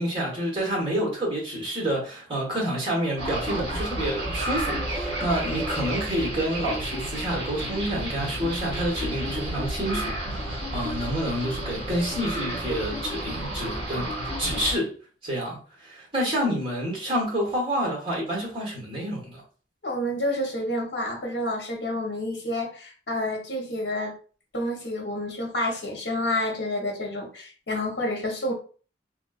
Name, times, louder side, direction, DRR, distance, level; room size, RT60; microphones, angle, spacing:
voice 1, 0.0-14.9 15.2-19.4, equal, 30° right, 1.3 m, -28 dB
sound 1, 3.2-14.8, right 1 dB, 60° right, 1.5 m, -31 dB
voice 2, 19.8-24.1 24.5-28.5, left 1 dB, 60° left, 1.0 m, -29 dB
3.4 x 2.5 x 2.4 m
head